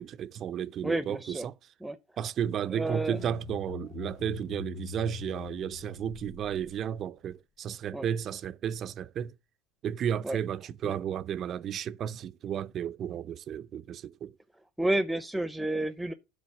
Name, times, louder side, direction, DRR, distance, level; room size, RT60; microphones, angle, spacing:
voice 1, 0.0-1.7 2.2-9.3 9.8-14.3, right 9 dB, 45° right, 0.5 m, -33 dB
voice 2, 0.8-1.5 1.8-2.0 2.7-3.2 7.9-8.1 10.2-10.4 10.8-10.9 14.8-16.1, right 1 dB, 5° right, 0.8 m, -30 dB
sound 1, 3.1-7.4, left 13 dB, 55° left, 1.1 m, -44 dB
9.5 x 4.0 x 6.1 m
hypercardioid pair, 90°, 0 cm